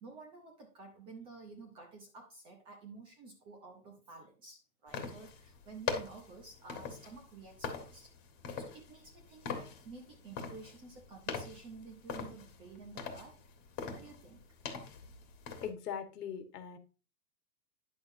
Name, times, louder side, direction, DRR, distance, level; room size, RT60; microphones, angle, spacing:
voice 1, 0.0-8.1 8.6-13.4 13.9-14.4, right 4 dB, 10° right, 2 dB, 0.5 m, -52 dB
sound 1, 4.9-15.7, left 6 dB, 30° left, 1.5 m, -43 dB
voice 2, 15.6-16.8, left 8 dB, 70° left, 9 dB, 1.5 m, -40 dB
9.8 x 6.8 x 2.6 m, 0.33 s
hypercardioid pair, 150°, 49 cm